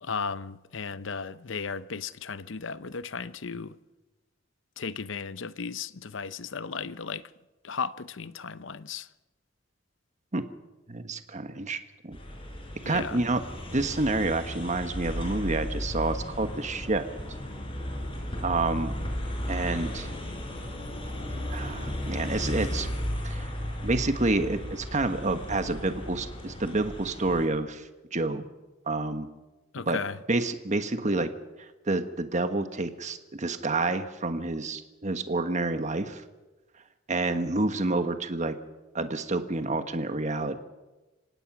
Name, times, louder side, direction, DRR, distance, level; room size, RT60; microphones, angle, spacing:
voice 1, 0.0-3.8 4.8-7.3 7.6-9.1 12.8-13.2 29.7-30.2, left 5 dB, 75° left, 0.7 m, -35 dB
voice 2, 10.9-12.2 12.8-13.4 13.7-17.0 18.4-18.9 19.5-20.1 21.5-22.9 23.2-23.5 23.8-28.4 28.9-29.3 29.9-30.0 30.3-31.3 31.9-36.2 37.1-38.5 38.9-40.6, right 2 dB, 40° right, 1.4 m, -28 dB
sound 1, 12.1-27.5, equal, 30° left, 4.5 m, -35 dB
25.5 x 18.0 x 6.1 m
head